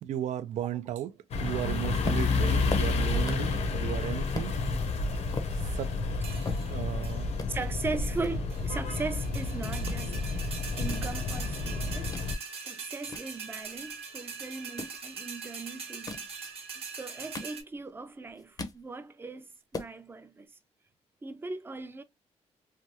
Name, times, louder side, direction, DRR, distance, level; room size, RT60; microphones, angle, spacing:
voice 1, 0.0-1.1 1.4-4.5 5.7-5.9 6.7-7.3, right 11 dB, 85° right, 0.4 m, -34 dB
sound 1, 1.3-12.4, left 3 dB, 70° left, 0.7 m, -30 dB
sound 2, 2.0-3.6 3.9-4.0 4.3-4.5 5.0-7.0 7.3-7.5 8.2-9.4 9.7-10.0 10.6-12.3 12.7-14.0 14.6-15.0 15.8-16.3 17.0-18.0 18.3-18.8 19.2-19.3 19.5-19.9, left 3 dB, 30° left, 0.6 m, -39 dB
sound 3, 3.0-3.5 4.0-4.5 5.0-5.6 6.2-6.7 7.0-7.2 7.6-7.7 8.0-8.7 8.9-17.6, right 5 dB, 60° right, 0.9 m, -42 dB
voice 2, 7.5-10.5 10.7-12.2 12.6-16.3 16.7-20.5 21.2-22.0, right 3 dB, 20° right, 0.4 m, -39 dB
3.2 x 2.3 x 2.8 m
cardioid pair, 140°, 12 cm